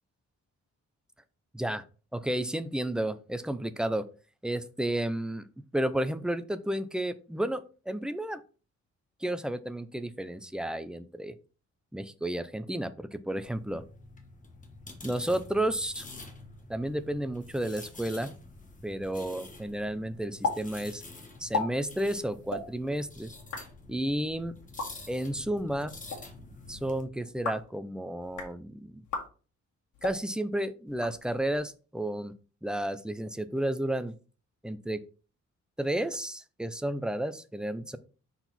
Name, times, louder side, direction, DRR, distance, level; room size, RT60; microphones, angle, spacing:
voice 1, 2.1-4.1 4.4-8.4 9.2-11.3 11.9-13.8 15.0-16.1 16.7-18.3 18.8-21.0 21.4-23.3 23.9-24.5 25.1-25.9 26.7-29.0 30.0-32.3 32.6-34.1 34.6-35.0 35.8-38.0, right 1 dB, 5° right, 12 dB, 0.4 m, -32 dB
sound 1, 13.4-27.0, left 2 dB, 25° left, 1.3 m, -48 dB
sound 2, 20.4-20.6 20.8-20.9 21.4-21.7 22.4-22.6 23.3-23.6 24.6-24.9 25.9-26.2 27.3-27.7 28.2-28.5 29.0-29.3 29.9-30.2 30.9-31.6, left 4 dB, 80° left, 2.1 m, -34 dB
5.9 x 4.4 x 4.0 m, 0.36 s
wide cardioid pair, 155°, 30 cm